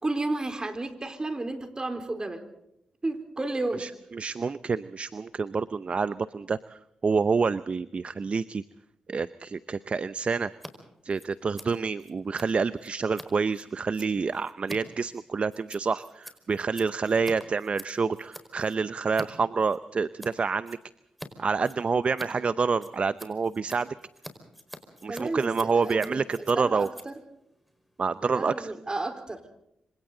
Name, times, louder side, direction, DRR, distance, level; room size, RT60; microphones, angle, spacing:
voice 1, 0.0-2.4 3.0-3.8 25.1-26.2 26.5-27.1 28.2-29.4, right 2 dB, 30° right, 7 dB, 4.1 m, -32 dB
voice 2, 3.8-8.6 9.1-10.5 11.0-20.8 21.4-23.9 25.0-26.9 28.0-28.7, right 5 dB, 50° right, 15 dB, 0.7 m, -28 dB
Scissors, 10.5-10.7 11.0-19.3 19.6-20.3 20.6-21.3 21.6-28.3, equal, ahead, 4.9 m, -47 dB
26.0 x 26.0 x 3.9 m, 0.80 s
supercardioid pair, 50°, 3 cm